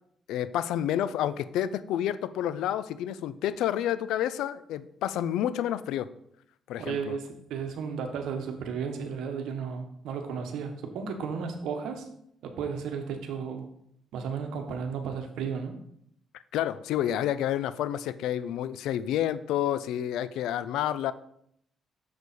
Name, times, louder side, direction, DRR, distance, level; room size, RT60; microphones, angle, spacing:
voice 1, 0.3-6.1 6.7-7.2 16.5-21.1, left 11 dB, 90° left, 15 dB, 0.4 m, -29 dB
voice 2, 6.8-12.1 12.4-13.7 14.1-15.8, right 6 dB, 85° right, 6 dB, 1.1 m, -34 dB
6.7 x 6.4 x 4.1 m, 0.72 s
cardioid pair, 90°, 0 cm